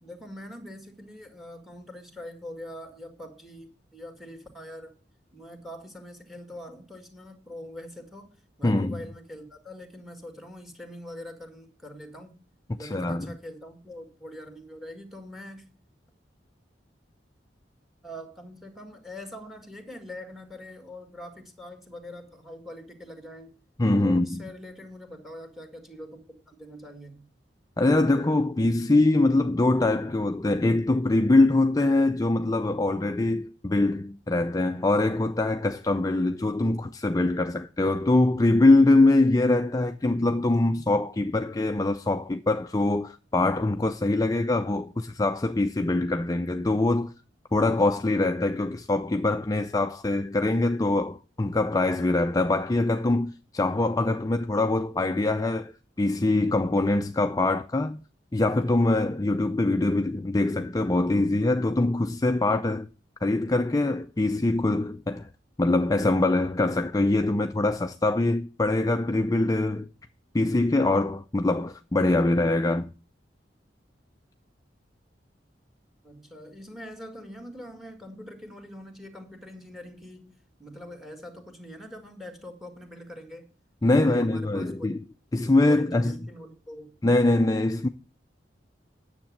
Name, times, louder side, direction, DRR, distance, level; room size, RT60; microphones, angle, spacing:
voice 1, 0.0-5.0 5.3-12.3 12.7-15.7 18.0-23.5 24.0-27.3 76.0-80.3 80.6-83.5 83.8-84.9 85.4-86.9, left 1 dB, ahead, 2.0 m, -43 dB
voice 2, 8.6-9.0 12.8-13.4 23.8-24.4 27.8-47.1 47.5-55.7 56.0-58.0 58.3-62.9 63.2-65.3 65.6-69.9 70.3-72.9 83.8-85.0 85.3-86.1 87.0-87.9, left 2 dB, 20° left, 0.4 m, -23 dB
9.7 x 7.3 x 7.3 m
head